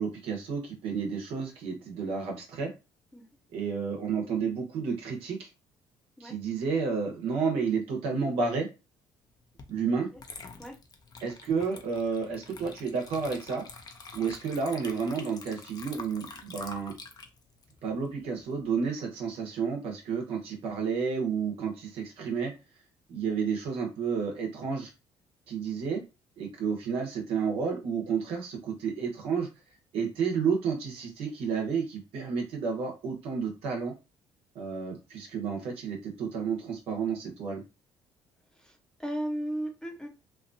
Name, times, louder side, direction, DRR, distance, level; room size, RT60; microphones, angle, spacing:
voice 1, 0.0-2.7 3.5-5.5 6.2-8.7 9.7-10.1 11.2-13.6 14.1-16.9 17.8-22.5 23.1-24.9 25.5-26.0 26.4-29.5 29.9-33.9 34.5-37.6, right 5 dB, 75° right, 2 dB, 1.1 m, -31 dB
Water / Liquid, 9.6-9.7 10.2-18.7, left 4 dB, 40° left, 0.6 m, -46 dB
voice 2, 38.6-40.1, right 1 dB, 5° left, 3 dB, 0.8 m, -35 dB
2.8 x 2.4 x 2.6 m, 0.27 s
supercardioid pair, 70°, 10 cm